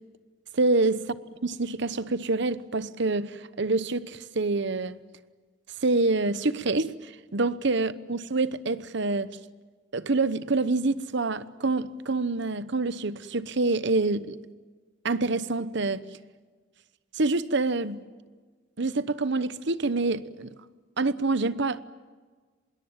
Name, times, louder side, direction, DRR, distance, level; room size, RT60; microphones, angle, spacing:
voice 1, 0.5-1.0 1.4-5.0 5.8-9.4 9.9-14.4 15.0-16.0 17.1-18.0 18.8-20.5 21.0-21.8, right 3 dB, 65° right, 1.0 m, -26 dB
25.5 x 21.5 x 8.9 m
head